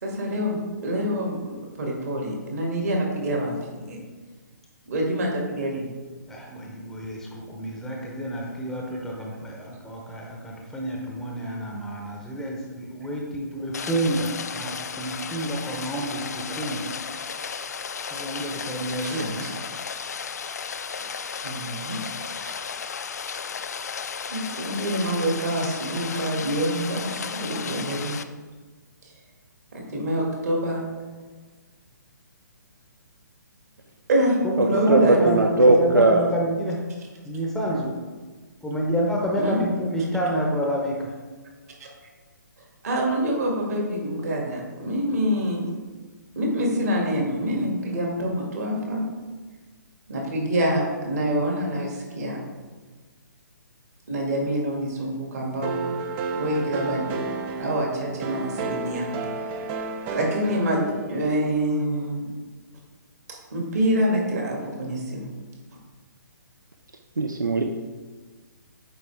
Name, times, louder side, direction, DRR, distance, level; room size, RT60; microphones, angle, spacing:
voice 1, 0.0-3.5 3.9-4.0 4.9-5.9 19.0-19.5 21.0-22.0 22.4-22.5 24.3-28.1 29.7-30.8 34.1-35.3 39.4-39.6 41.8-41.9 42.8-45.7 46.4-49.0 50.1-52.4 54.1-55.9 56.3-57.1 57.6-59.1 59.3-59.6 60.1-62.3 63.3-65.3, equal, 55° right, -1 dB, 2.1 m, -26 dB
voice 2, 6.3-16.8 18.1-19.4 34.4-36.8 37.2-38.0 38.6-41.1, equal, 5° left, -2 dB, 0.7 m, -29 dB
Rain, 13.7-28.2, left 6 dB, 55° left, 0.4 m, -34 dB
voice 3, 34.6-36.3 67.2-67.6, right 2 dB, 75° right, 4 dB, 0.6 m, -19 dB
sound 1, 55.6-61.5, right 4 dB, 15° right, 0.3 m, -32 dB
8.5 x 4.7 x 3.4 m, 1.4 s
figure-of-eight pair, 135°, 10 cm